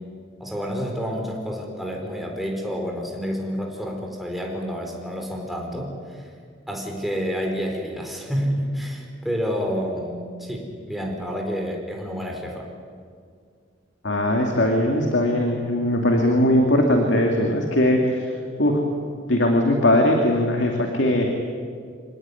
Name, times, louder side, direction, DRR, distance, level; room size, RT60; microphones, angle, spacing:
voice 1, 0.4-6.3 6.7-12.7, equal, ahead, 0 dB, 4.6 m, -29 dB
voice 2, 14.0-18.3 18.6-18.8 19.3-21.3, left 1 dB, 70° left, 2 dB, 2.4 m, -20 dB
26.0 x 18.0 x 9.8 m, 2.1 s
head